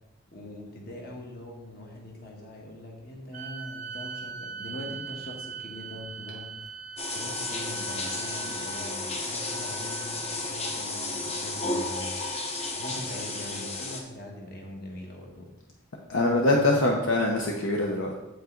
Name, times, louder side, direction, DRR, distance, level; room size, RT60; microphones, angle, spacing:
voice 1, 0.3-6.5 7.1-12.2 12.8-15.5 16.5-16.9, left 1 dB, 45° left, 0 dB, 1.5 m, -42 dB
sound 1, 3.3-10.8, right 7 dB, 40° right, 0.4 m, -41 dB
sound 2, 7.0-14.0, left 2 dB, 30° left, 0.9 m, -33 dB
voice 2, 16.1-18.1, left 2 dB, 70° left, 0 dB, 0.8 m, -23 dB
8.1 x 5.4 x 3.8 m, 0.96 s
head